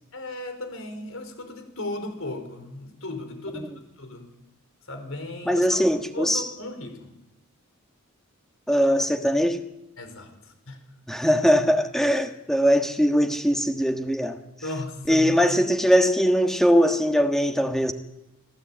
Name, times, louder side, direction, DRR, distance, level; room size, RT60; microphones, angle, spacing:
voice 1, 0.1-3.7 4.0-4.3 4.9-5.8 6.1-7.1 10.0-10.8 14.6-15.5, left 2 dB, 70° left, 4.6 m, -36 dB
voice 2, 5.4-6.5 8.7-9.6 11.1-14.4 15.1-17.9, equal, ahead, 1.4 m, -21 dB
25.5 x 16.5 x 8.7 m
head